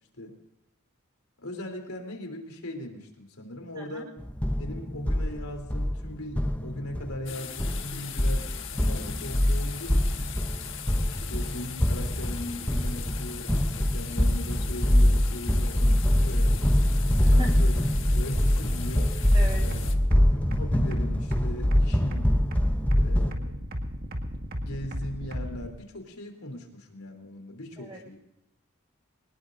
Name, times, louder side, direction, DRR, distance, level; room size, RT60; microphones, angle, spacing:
voice 1, 1.4-4.2 4.6-10.3 11.0-16.7 17.2-17.8 18.1-19.3 19.6-19.9 20.3-22.3 23.0-23.7 24.6-28.2, left 1 dB, 85° left, 3 dB, 3.4 m, -39 dB
voice 2, 3.8-4.1 17.2-17.5 19.3-19.6 27.8-28.0, right 1 dB, 20° right, -1 dB, 5.6 m, -38 dB
sound 1, 4.2-23.3, equal, 5° left, 0.7 m, -24 dB
sound 2, 7.3-20.0, left 9 dB, 60° left, 1.3 m, -40 dB
sound 3, 19.3-25.7, equal, 45° right, 1.9 m, -34 dB
24.0 x 19.5 x 2.6 m, 0.88 s
head